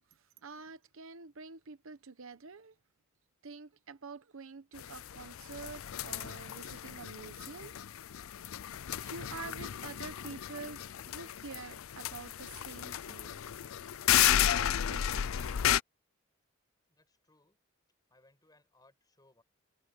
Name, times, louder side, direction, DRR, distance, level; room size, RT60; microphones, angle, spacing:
voice 1, 0.4-2.7 3.4-7.7 9.0-13.4 14.5-15.0, right 4 dB, 70° right, 0.9 m, -47 dB
sound 1, 4.8-15.8, left 11 dB, 70° left, 0.5 m, -33 dB
voice 2, 16.9-17.6 18.1-19.4, left 2 dB, 20° left, 7.5 m, -66 dB
head